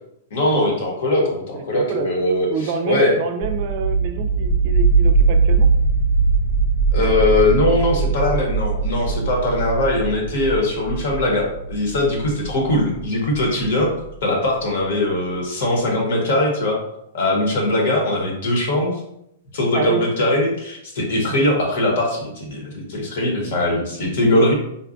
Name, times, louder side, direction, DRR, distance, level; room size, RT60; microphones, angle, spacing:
voice 1, 0.3-3.1 6.9-13.9 14.2-16.8 17.1-19.0 19.5-24.5, left 1 dB, 60° left, 0 dB, 1.0 m, -20 dB
voice 2, 1.5-2.1 2.5-5.7 7.8-7.9 8.3-8.5 19.7-20.0 21.3-21.4 24.3-24.5, right 6 dB, 45° right, 6 dB, 0.4 m, -28 dB
sound 1, 3.4-14.1, right 4 dB, 40° left, 0.5 m, -21 dB
3.9 x 2.2 x 2.5 m, 0.78 s
supercardioid pair, 160°, 0 cm